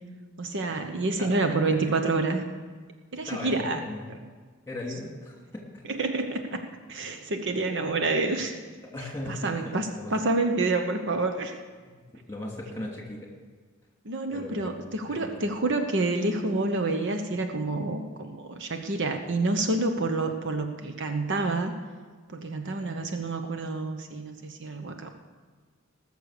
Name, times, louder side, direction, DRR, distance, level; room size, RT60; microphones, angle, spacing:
voice 1, 0.4-2.4 3.1-3.8 4.1-4.2 5.9-6.6 6.9-8.5 9.3-11.5 14.0-21.7 22.3-25.1, right 2 dB, 60° right, 6 dB, 1.0 m, -28 dB
voice 2, 3.3-4.1 4.7-6.0 8.9-10.1 11.8-13.3 14.3-14.7 15.1-15.3, left 1 dB, 15° left, -1 dB, 2.6 m, -38 dB
19.5 x 6.7 x 6.6 m, 1.5 s
head